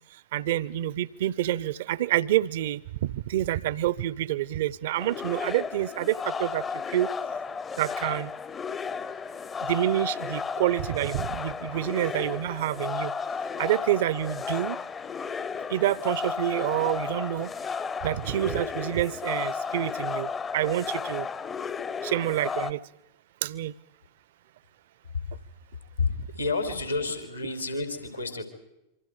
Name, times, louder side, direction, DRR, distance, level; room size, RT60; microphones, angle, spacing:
voice 1, 0.3-6.6 6.9-7.1 7.8-8.3 9.6-13.1 13.6-14.8 15.7-17.5 18.0-21.3 22.0-22.8 23.4-23.7, right 13 dB, 55° right, 22 dB, 0.7 m, -27 dB
sound 1, 4.9-22.7, left 5 dB, 20° left, 0.7 m, -33 dB
voice 2, 26.0-28.4, left 3 dB, 85° left, 7 dB, 4.1 m, -30 dB
26.5 x 24.5 x 5.3 m, 0.91 s
figure-of-eight pair, 90°, 0 cm